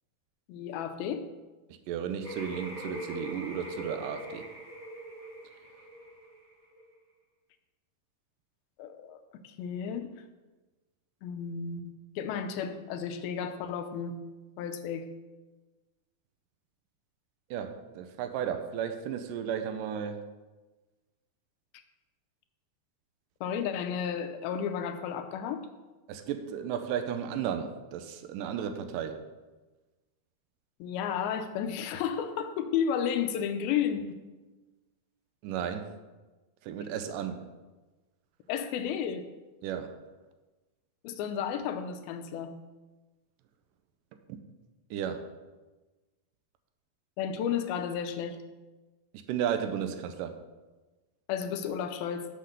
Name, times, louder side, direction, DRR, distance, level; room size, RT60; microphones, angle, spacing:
voice 1, 0.5-1.3 8.8-10.2 11.2-11.8 12.2-14.2 14.6-15.1 23.4-25.6 30.8-34.2 38.5-39.3 41.0-42.5 47.2-48.4 51.3-52.3, left 8 dB, 80° left, 8 dB, 2.4 m, -32 dB
voice 2, 1.9-4.5 17.5-20.3 26.1-29.2 35.4-35.9 36.6-37.4 39.6-39.9 44.3-44.4 44.9-45.3 49.3-50.4, right 8 dB, 80° right, 8 dB, 2.0 m, -34 dB
sound 1, 2.2-6.9, right 1 dB, 35° right, 0.5 m, -42 dB
7.8 x 6.5 x 6.7 m, 1.2 s
omnidirectional pair, 4.5 m